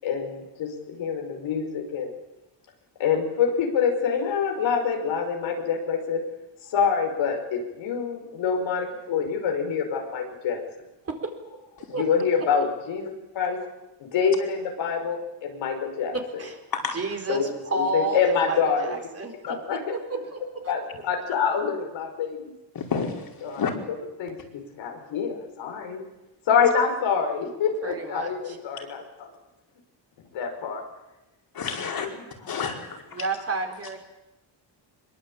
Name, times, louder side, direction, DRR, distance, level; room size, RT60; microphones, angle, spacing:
voice 1, 0.0-2.1 3.0-6.2 6.7-10.6 11.9-13.6 14.0-16.4 17.3-17.4 17.7-18.9 19.5-19.9 20.7-22.5 23.4-23.6 24.2-26.0 26.5-29.3 30.3-30.8 31.8-32.1 32.5-32.6, left 6 dB, 85° left, 3 dB, 5.3 m, -26 dB
voice 2, 16.1-16.6 16.9-17.4 17.6-19.3 19.7-20.4 20.6-20.7 27.8-28.6 33.1-34.0, right 3 dB, 30° right, 3 dB, 4.4 m, -31 dB
voice 3, 22.7-23.7 31.5-32.1 32.5-33.2, left 6 dB, 50° left, 2 dB, 5.0 m, -30 dB
24.0 x 22.5 x 8.7 m, 1.0 s
cardioid pair, 130°, 45 cm